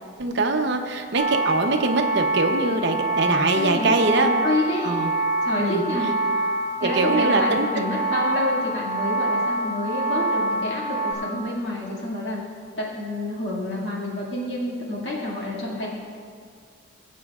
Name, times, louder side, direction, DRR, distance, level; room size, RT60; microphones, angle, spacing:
voice 1, 0.2-4.3 4.8-5.1 5.6-5.8 6.8-7.9, right 3 dB, 55° right, 4 dB, 0.8 m, -23 dB
sound 1, 1.2-11.1, right 2 dB, 30° right, 2.2 m, -25 dB
voice 2, 3.5-4.9 5.4-6.1 6.3-6.5 6.8-12.4 12.8-15.9, left 1 dB, 60° left, -5 dB, 2.1 m, -28 dB
20.0 x 8.3 x 2.4 m, 2.2 s
head